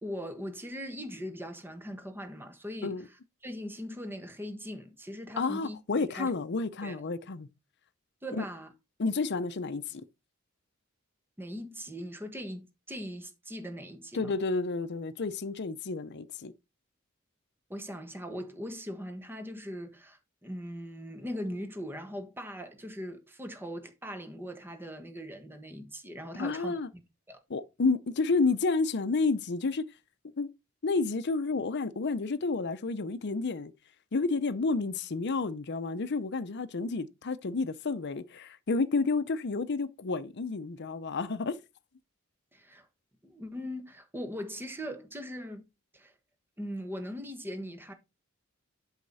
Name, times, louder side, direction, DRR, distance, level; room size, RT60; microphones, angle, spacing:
voice 1, 0.0-3.0 3.4-6.3 6.8-7.0 8.2-8.7 11.4-14.3 17.7-26.7 27.3-27.4 42.5-42.9 43.2-45.7 45.9-46.1 46.6-47.9, equal, 10° right, 1.3 m, -40 dB
voice 2, 5.4-7.5 8.3-8.4 9.0-10.0 14.1-16.5 26.3-26.9 27.5-29.8 30.4-30.5 30.8-33.7 34.1-41.6, left 3 dB, 55° left, 0.7 m, -30 dB
8.1 x 5.7 x 4.1 m
head